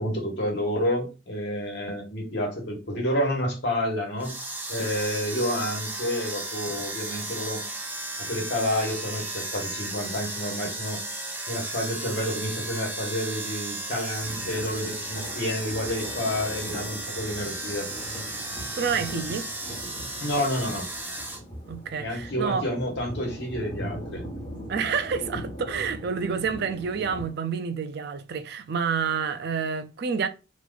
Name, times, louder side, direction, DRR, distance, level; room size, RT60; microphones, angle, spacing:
voice 1, 0.0-7.6 8.2-11.0 11.5-17.9 20.2-20.9 22.0-24.2, equal, 65° left, 1.3 m, -29 dB
sound 1, 4.2-21.4, right 2 dB, 10° right, 0.6 m, -35 dB
Thunder, 14.1-27.3, equal, 25° left, 1.5 m, -40 dB
voice 2, 18.7-19.5 21.7-22.7 24.7-30.3, right 6 dB, 60° right, 0.4 m, -28 dB
3.1 x 2.5 x 3.7 m
head